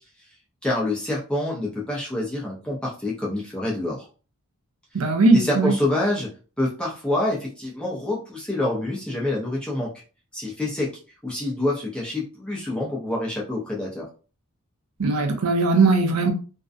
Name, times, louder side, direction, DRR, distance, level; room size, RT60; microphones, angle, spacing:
voice 1, 0.6-4.1 5.0-5.1 5.3-6.3 6.6-9.9 10.3-10.9 11.2-14.1, left 1 dB, 5° left, 0.5 m, -26 dB
voice 2, 4.9-5.7 15.0-16.3, right 3 dB, 75° right, 0.5 m, -19 dB
2.5 x 2.1 x 2.5 m
head